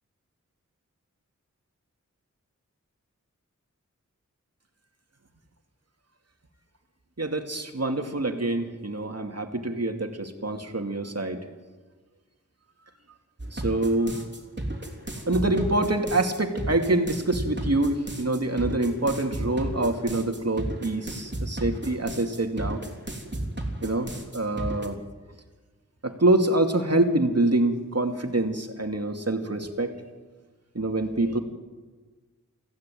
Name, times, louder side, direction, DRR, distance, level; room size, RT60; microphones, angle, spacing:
voice 1, 7.2-11.4 13.5-14.2 15.1-22.8 23.8-25.0 26.0-29.9 30.7-31.4, right 2 dB, 55° right, 5 dB, 2.5 m, -26 dB
sound 1, 13.4-24.9, right 1 dB, 35° right, 3.4 m, -33 dB
24.5 x 15.5 x 9.2 m, 1.4 s
wide cardioid pair, 55°, 31 cm